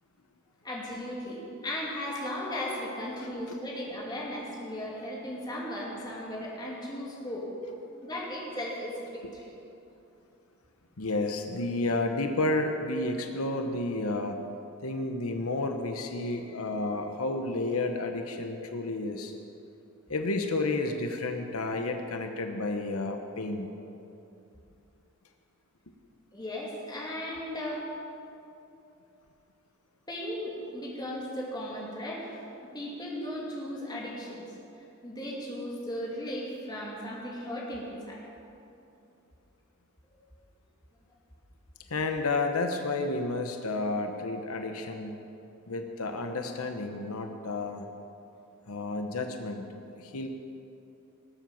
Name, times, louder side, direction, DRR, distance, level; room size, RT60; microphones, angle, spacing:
voice 1, 0.6-7.5 8.0-9.5 26.3-27.9 30.1-34.4 35.0-38.2, left 1 dB, 20° left, -4 dB, 2.7 m, -36 dB
voice 2, 3.2-3.6 9.2-9.3 11.0-14.4 14.8-19.3 20.1-23.7 41.9-45.2 45.7-47.9 48.7-49.6 49.9-50.3, left 2 dB, 90° left, 5 dB, 1.0 m, -31 dB
19.0 x 7.8 x 7.2 m, 2.8 s
head